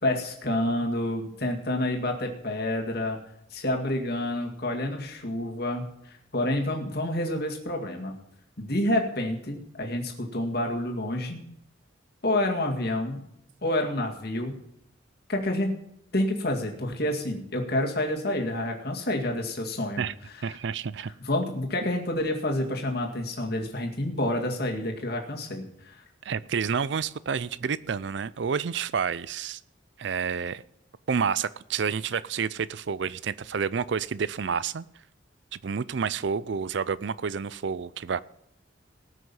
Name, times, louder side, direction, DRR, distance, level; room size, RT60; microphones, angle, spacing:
voice 1, 0.0-3.2 3.5-8.1 8.6-11.4 12.2-13.2 13.6-14.6 15.3-15.7 16.1-20.0 20.3-20.6 21.2-26.0, left 1 dB, 50° left, 2.1 m, -28 dB
voice 2, 20.4-21.1 26.3-29.6 30.0-30.6 31.1-34.9 35.5-38.2, right 6 dB, 60° right, 0.4 m, -29 dB
19.0 x 6.4 x 5.5 m
head